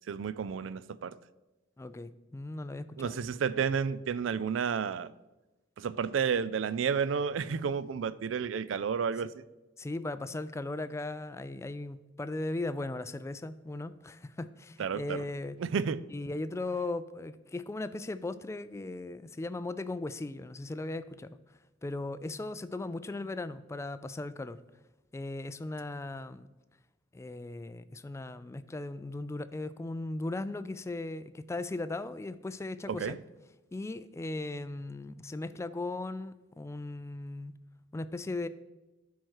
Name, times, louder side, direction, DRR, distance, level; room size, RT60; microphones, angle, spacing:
voice 1, 0.1-1.2 3.0-5.1 5.8-9.3 14.8-15.2 15.6-16.0 32.9-33.2, right 6 dB, 75° right, 0.4 m, -31 dB
voice 2, 1.8-3.2 9.8-15.6 16.1-21.4 21.8-24.6 25.1-26.5 27.1-33.2 33.7-37.6 37.9-38.5, left 2 dB, 15° left, 0.3 m, -37 dB
12.0 x 4.7 x 4.6 m
head